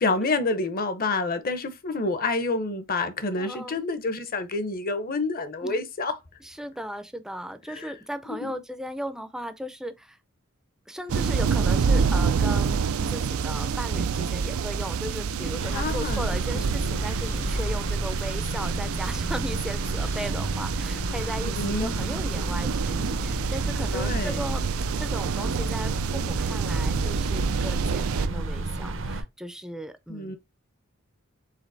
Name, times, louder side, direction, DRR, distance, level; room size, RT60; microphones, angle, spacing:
voice 1, 0.0-6.1 7.7-8.0 8.4-8.6 15.7-16.8 21.6-22.1 23.9-24.4 30.1-30.4, left 3 dB, 45° left, 0.8 m, -28 dB
voice 2, 3.3-3.8 5.6-5.8 6.6-10.2 10.9-24.6 24.9-30.4, equal, 5° right, 0.5 m, -36 dB
sound 1, 11.1-28.3, right 6 dB, 80° right, 0.4 m, -28 dB
sound 2, 15.4-20.5, equal, 75° left, 1.8 m, -42 dB
sound 3, 15.6-29.2, right 2 dB, 65° right, 0.8 m, -31 dB
5.1 x 3.9 x 2.6 m
head